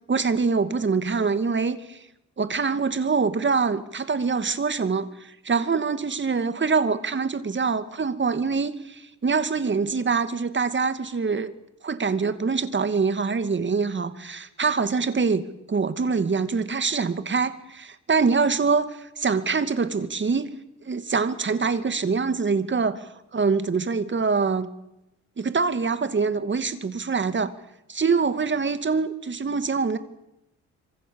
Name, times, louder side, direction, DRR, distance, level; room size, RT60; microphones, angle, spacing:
voice 1, 0.1-2.0 2.4-11.5 11.8-20.5 20.8-24.7 25.4-27.5 27.9-30.0, right 5 dB, 35° right, 11 dB, 2.5 m, -24 dB
26.0 x 25.0 x 7.2 m, 0.87 s
cardioid pair, 70°, 31 cm